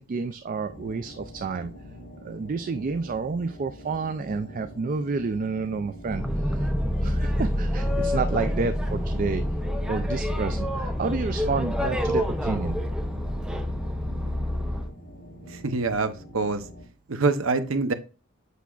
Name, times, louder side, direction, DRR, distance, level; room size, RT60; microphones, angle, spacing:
voice 1, 0.0-1.7 2.2-6.7 7.0-9.5 9.9-12.8, right 4 dB, 40° right, 0.3 m, -30 dB
sound 1, 0.7-16.9, equal, 60° left, 2.5 m, -45 dB
Boat Water vehicle, 6.1-14.9, equal, 5° right, 0.6 m, -27 dB
voice 2, 15.5-16.6 17.1-17.9, right 3 dB, 70° right, 0.8 m, -25 dB
8.2 x 5.6 x 2.4 m
head